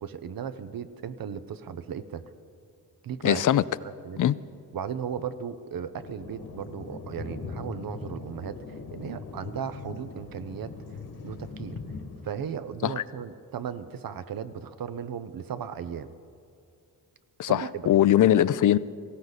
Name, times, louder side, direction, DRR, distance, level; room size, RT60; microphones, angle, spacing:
voice 1, 0.0-2.2 3.0-3.4 3.8-4.2 4.7-10.7 11.2-11.8 12.2-16.1 17.5-17.8, right 8 dB, 65° right, 12 dB, 0.8 m, -36 dB
voice 2, 3.2-3.6 4.2-4.3 12.8-12.9 17.4-18.8, left 11 dB, 55° left, 18 dB, 0.5 m, -21 dB
Thunder, 6.0-12.3, left 4 dB, 70° left, 1.9 m, -40 dB
18.5 x 16.0 x 4.1 m, 2.4 s
cardioid pair, 60°, 38 cm